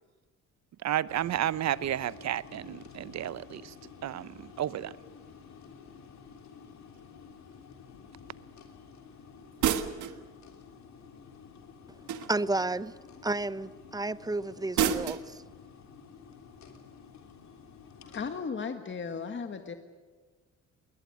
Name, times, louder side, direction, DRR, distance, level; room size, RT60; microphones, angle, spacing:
voice 1, 0.8-3.7 4.0-4.9, right 11 dB, 60° right, 0.8 m, -32 dB
sound 1, 1.1-18.4, left 6 dB, 65° left, 3.4 m, -51 dB
sound 2, 9.6-10.2 12.1-12.6 14.8-15.3, right 9 dB, 75° right, 1.5 m, -28 dB
voice 2, 12.3-12.9 13.2-15.4, right 2 dB, 15° right, 0.7 m, -31 dB
voice 3, 18.0-19.8, left 5 dB, 40° left, 1.6 m, -36 dB
20.5 x 20.5 x 9.3 m
cardioid pair, 90°, 30 cm